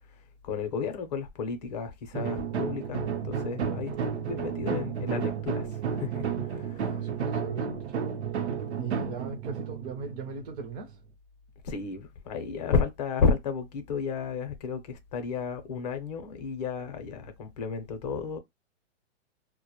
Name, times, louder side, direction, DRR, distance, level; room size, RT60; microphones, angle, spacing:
voice 1, 0.4-6.2 6.5-7.0 11.6-18.4, left 5 dB, 35° left, 0.6 m, -32 dB
sound 1, 2.1-10.9, right 7 dB, 70° right, 0.7 m, -32 dB
voice 2, 6.9-8.2 8.8-11.0, right 5 dB, 35° right, 0.5 m, -38 dB
2.1 x 2.1 x 2.8 m
hypercardioid pair, 150°, 34 cm